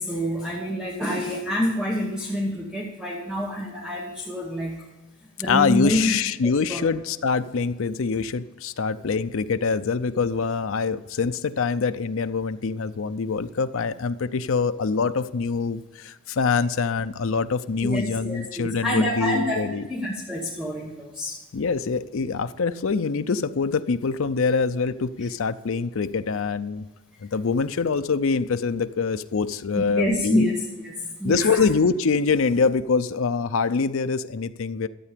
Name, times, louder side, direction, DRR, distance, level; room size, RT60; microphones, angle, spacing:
voice 1, 0.0-4.8 5.4-6.1 6.4-6.9 17.8-21.4 29.7-31.6, left 1 dB, 5° right, -3 dB, 1.3 m, -27 dB
voice 2, 5.4-19.9 21.5-26.9 27.2-30.5 31.2-34.9, left 5 dB, 65° left, 10 dB, 0.5 m, -24 dB
12.5 x 8.4 x 5.1 m, 1.1 s
head